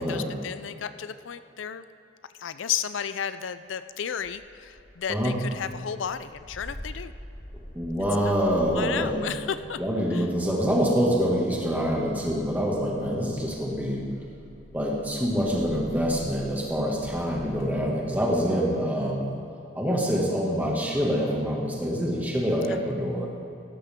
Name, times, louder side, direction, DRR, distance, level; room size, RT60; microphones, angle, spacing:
voice 1, 0.0-1.8 2.4-7.1 8.2-8.3 8.7-9.8 10.1-10.2 18.9-19.2 22.7-22.8, left 8 dB, 85° left, 13 dB, 0.5 m, -33 dB
Engine starting, 4.2-18.3, equal, 30° left, 2.6 m, -46 dB
voice 2, 7.7-9.2 9.8-14.0 14.7-19.3 19.8-23.3, equal, 10° right, -3 dB, 2.1 m, -26 dB
16.5 x 12.5 x 3.7 m, 2.8 s
head